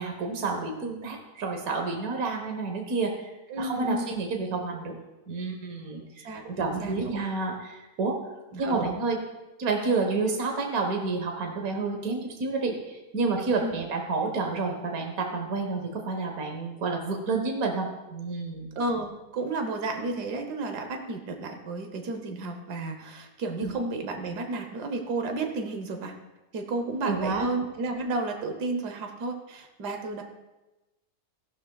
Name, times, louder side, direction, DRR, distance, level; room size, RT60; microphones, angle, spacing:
voice 1, 0.0-5.0 5.3-8.2 8.6-9.2 9.6-18.7 23.6-23.7 27.0-27.5, right 3 dB, 65° right, 2 dB, 1.7 m, -29 dB
voice 2, 3.5-4.2 6.2-7.2 8.5-9.0 13.6-13.8 18.7-26.1 26.5-30.2, right 2 dB, 90° right, 5 dB, 1.6 m, -32 dB
16.0 x 11.5 x 2.3 m, 1.0 s
omnidirectional pair, 1.7 m